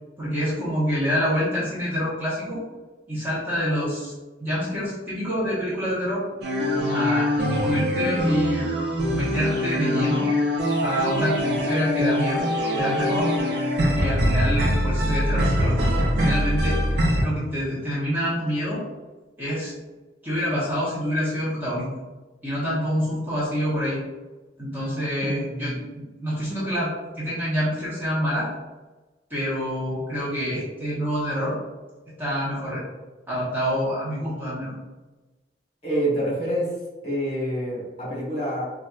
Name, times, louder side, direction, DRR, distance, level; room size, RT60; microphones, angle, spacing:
voice 1, 0.2-2.6 3.1-4.1 4.4-6.3 6.9-8.7 9.1-10.3 10.8-13.3 13.9-16.8 17.2-18.8 19.4-19.8 20.2-21.9 22.4-24.0 24.6-28.5 29.3-31.5 32.2-32.8 33.3-34.7, equal, 10° right, -9 dB, 0.8 m, -27 dB
sound 1, 6.4-17.2, equal, 65° right, 0.5 m, -23 dB
voice 2, 25.2-25.7 35.8-36.7 37.0-38.6, right 1 dB, 35° left, -6 dB, 1.3 m, -27 dB
4.1 x 2.3 x 2.3 m, 1.2 s
head